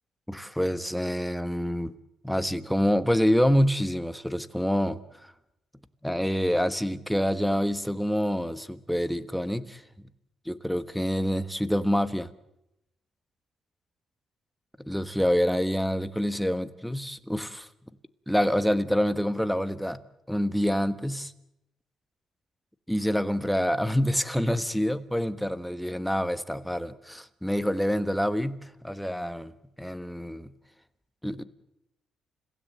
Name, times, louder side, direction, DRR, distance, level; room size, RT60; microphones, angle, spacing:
voice 1, 0.3-2.0 2.2-5.3 6.0-9.8 10.4-12.3 14.9-17.7 18.3-20.0 20.3-21.3 22.9-29.5 29.8-30.5 31.2-31.4, equal, ahead, 1.3 m, -27 dB
30.0 x 16.5 x 8.1 m
cardioid pair, 95°, 0 cm